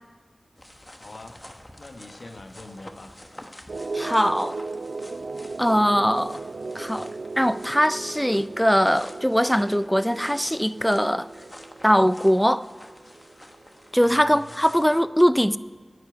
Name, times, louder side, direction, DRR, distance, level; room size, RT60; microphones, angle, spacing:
sound 1, 0.6-15.0, left 1 dB, 20° left, 1.1 m, -48 dB
voice 1, 1.0-1.4 1.8-3.2 14.0-14.6, left 2 dB, 75° left, 5 dB, 1.2 m, -43 dB
sound 2, 3.7-14.1, right 3 dB, 75° right, 0.3 m, -37 dB
voice 2, 3.9-4.6 5.6-6.4 6.7-7.1 7.4-11.3 11.8-12.6 13.9-15.6, equal, 5° left, 15 dB, 0.4 m, -21 dB
10.0 x 8.4 x 9.3 m, 1.5 s
wide cardioid pair, 65°, 0 cm